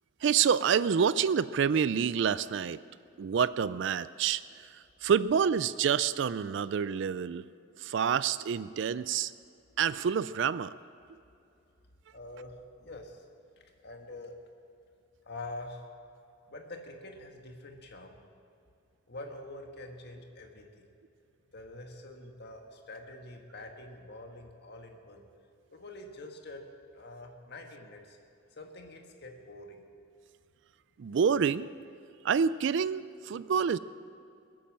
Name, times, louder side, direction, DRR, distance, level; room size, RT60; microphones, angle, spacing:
voice 1, 0.2-2.8 3.2-7.4 7.8-9.3 9.8-10.7 31.0-31.7 32.2-33.8, right 7 dB, 60° right, 17 dB, 0.4 m, -28 dB
voice 2, 12.1-13.2 13.8-14.4 15.3-15.9 16.5-18.2 19.1-20.8 21.5-25.3 25.7-26.6 26.9-28.2 28.6-29.8, left 2 dB, 55° left, 3 dB, 1.8 m, -45 dB
21.5 x 8.7 x 7.5 m, 2.6 s
head